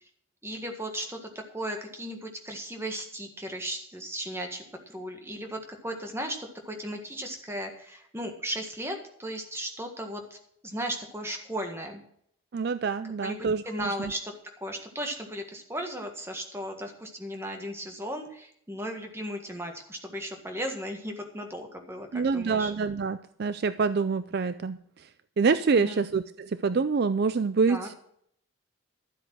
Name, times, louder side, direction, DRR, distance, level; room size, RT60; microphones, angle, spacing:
voice 1, 0.4-10.4 10.6-12.0 13.2-13.4 13.6-22.7 25.7-26.0 27.7-27.9, equal, 10° right, 4 dB, 1.6 m, -36 dB
voice 2, 12.5-14.1 22.1-25.1 25.4-28.0, right 5 dB, 50° right, 13 dB, 0.4 m, -26 dB
13.0 x 8.0 x 6.1 m, 0.68 s
head